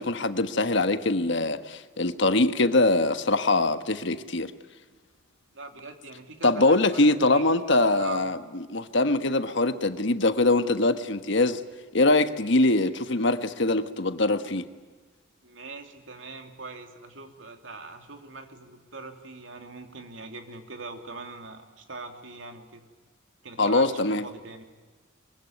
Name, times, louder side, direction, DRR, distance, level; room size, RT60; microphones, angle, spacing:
voice 1, 0.0-4.5 6.4-8.4 8.7-11.6 11.9-14.6 23.6-24.2, left 2 dB, 60° left, 9 dB, 1.4 m, -23 dB
voice 2, 5.5-7.5 7.9-8.2 9.3-9.6 15.4-22.8 23.4-24.6, right 3 dB, 70° right, 5 dB, 3.0 m, -42 dB
23.5 x 23.0 x 9.4 m, 1.4 s
head